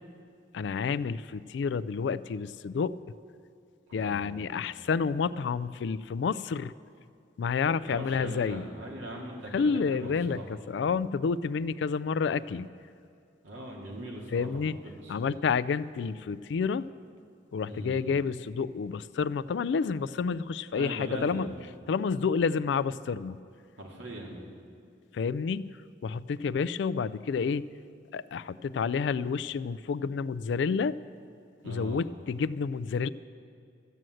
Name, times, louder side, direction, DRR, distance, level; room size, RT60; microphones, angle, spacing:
voice 1, 0.5-3.0 3.9-6.7 7.4-8.7 9.5-12.7 14.3-14.8 15.1-16.9 17.5-21.5 21.9-23.4 25.1-25.7 26.0-27.6 28.1-30.9 31.6-33.1, left 5 dB, 70° left, 15 dB, 0.3 m, -29 dB
voice 2, 3.9-4.5 7.9-10.4 13.4-15.3 17.7-18.0 20.8-21.5 23.8-24.4 31.6-32.1, right 1 dB, 85° right, -2 dB, 2.2 m, -40 dB
14.0 x 7.7 x 7.7 m, 2.4 s
head